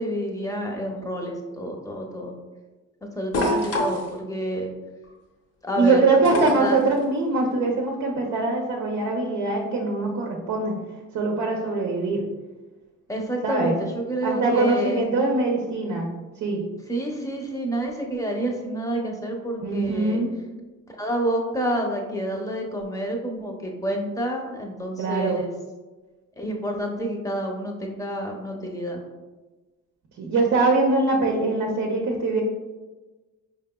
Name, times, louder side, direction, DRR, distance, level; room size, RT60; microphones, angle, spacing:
voice 1, 0.0-2.3 3.2-4.7 5.6-6.0 6.6-6.8 13.1-15.1 16.9-20.2 21.0-25.5 26.4-29.0, right 1 dB, 10° left, 1 dB, 0.7 m, -28 dB
sound 1, 3.3-4.1 6.2-6.8 8.3-8.4, left 1 dB, 55° left, 0.8 m, -24 dB
voice 2, 5.8-10.8 11.1-12.2 13.4-13.8 14.2-16.6 19.6-20.3 25.0-25.4 30.2-32.4, right 3 dB, 70° right, 0 dB, 0.7 m, -23 dB
4.8 x 2.9 x 2.2 m, 1.2 s
cardioid pair, 90°, 30 cm